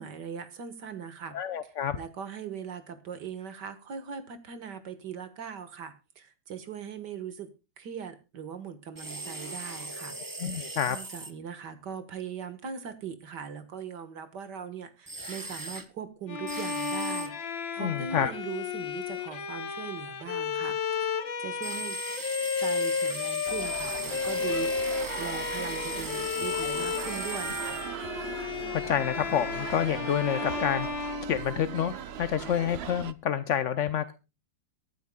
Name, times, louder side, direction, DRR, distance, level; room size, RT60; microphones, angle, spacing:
voice 1, 0.0-1.4 1.9-7.5 7.8-10.2 10.4-21.1 21.4-22.0 22.6-27.8, right 7 dB, 65° right, 11 dB, 2.1 m, -40 dB
voice 2, 1.3-2.0 10.4-11.0 17.8-18.3 28.7-30.9 31.3-34.1, left 9 dB, 60° left, 12 dB, 0.8 m, -28 dB
sound 1, 9.0-11.3 15.1-15.9 16.5-17.3 21.6-27.9, right 2 dB, 15° right, 0.8 m, -38 dB
Bowed string instrument, 16.3-32.0, left 6 dB, 85° left, 2.4 m, -33 dB
sound 2, 23.5-33.1, right 9 dB, 85° right, 0.5 m, -39 dB
23.5 x 9.3 x 2.3 m, 0.29 s
omnidirectional pair, 2.0 m